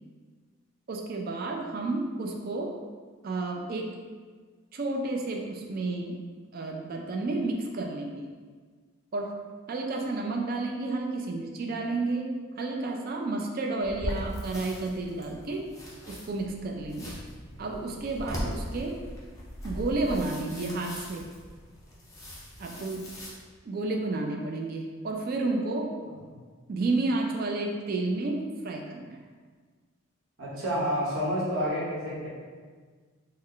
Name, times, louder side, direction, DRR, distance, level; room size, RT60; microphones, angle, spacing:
voice 1, 0.9-2.8 3.2-3.9 4.7-6.2 6.5-8.3 9.1-9.4 9.7-15.7 16.1-17.1 17.6-19.0 19.6-21.3 22.6-23.0 23.7-25.9 26.7-29.2, right 2 dB, 45° right, 2 dB, 0.3 m, -31 dB
sound 1, 13.8-23.3, equal, 15° left, 0.5 m, -39 dB
voice 2, 30.4-32.3, equal, 70° right, -6 dB, 1.0 m, -29 dB
3.2 x 2.1 x 3.7 m, 1.5 s
head